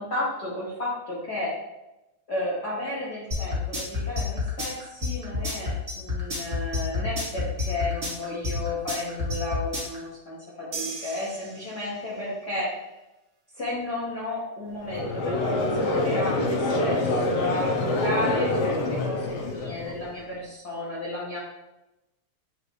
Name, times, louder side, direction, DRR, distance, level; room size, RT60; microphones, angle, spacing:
voice 1, 0.0-1.5 2.3-12.7 13.5-21.4, left 2 dB, 45° left, -8 dB, 1.5 m, -33 dB
sound 1, 3.3-10.0, left 3 dB, 25° right, 1.3 m, -28 dB
sound 2, 10.7-12.3, right 4 dB, 65° right, 1.9 m, -38 dB
Conversation / Crowd, 14.9-20.2, left 2 dB, 80° left, 1.3 m, -26 dB
9.5 x 3.2 x 3.1 m, 0.96 s
omnidirectional pair, 3.4 m